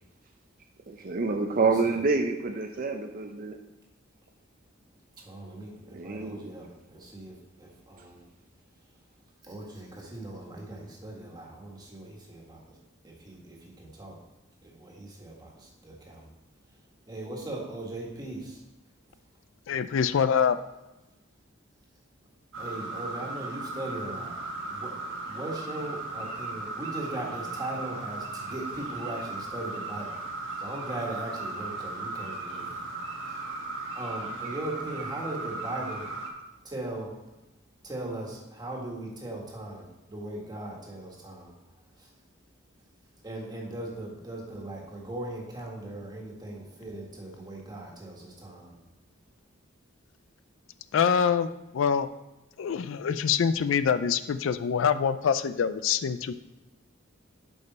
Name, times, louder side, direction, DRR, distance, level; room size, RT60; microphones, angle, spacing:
voice 1, 0.9-3.6 5.9-6.5, right 4 dB, 45° right, 4 dB, 0.6 m, -27 dB
voice 2, 1.5-2.0 5.3-8.3 9.4-12.6 13.0-14.2 14.6-16.3 17.1-18.6 22.6-24.3 24.7-25.0 25.3-30.2 30.6-32.7 33.9-36.1 36.6-37.1 37.8-41.5 43.2-48.7, right 1 dB, 20° right, -2 dB, 1.7 m, -39 dB
voice 3, 19.7-20.6 50.9-51.5 51.7-52.1 52.6-56.3, left 7 dB, 65° left, 13 dB, 0.4 m, -25 dB
sound 1, 22.5-36.3, right 3 dB, 65° right, 1.4 m, -36 dB
7.9 x 5.4 x 4.2 m, 1.0 s
head